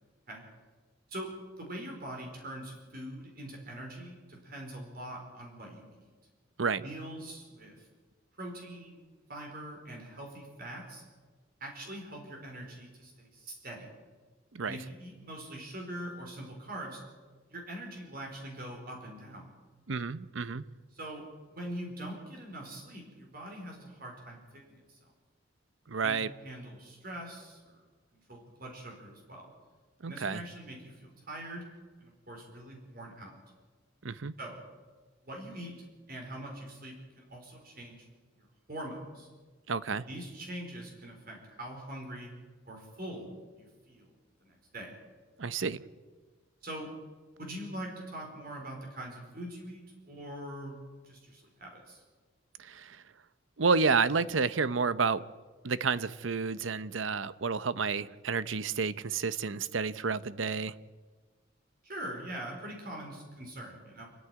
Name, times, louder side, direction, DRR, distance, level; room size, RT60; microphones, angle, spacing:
voice 1, 1.1-5.9 6.8-7.9 8.3-11.0 11.6-13.9 14.6-17.0 17.5-19.5 20.9-25.0 26.0-27.8 28.3-29.5 30.0-31.7 32.0-33.4 34.4-34.6 35.2-35.8 36.1-38.1 38.4-39.3 40.1-42.3 42.6-43.3 43.6-44.1 44.4-44.9 46.6-46.9 47.4-50.8 51.0-52.0 61.8-64.1, right 1 dB, 50° right, 4.5 m, -43 dB
voice 2, 19.9-20.6 25.9-26.3 30.0-30.4 34.0-34.3 39.7-40.0 45.4-45.8 52.6-53.0 53.6-55.2 55.6-60.7, right 5 dB, 80° right, 0.8 m, -30 dB
29.0 x 9.7 x 9.7 m
head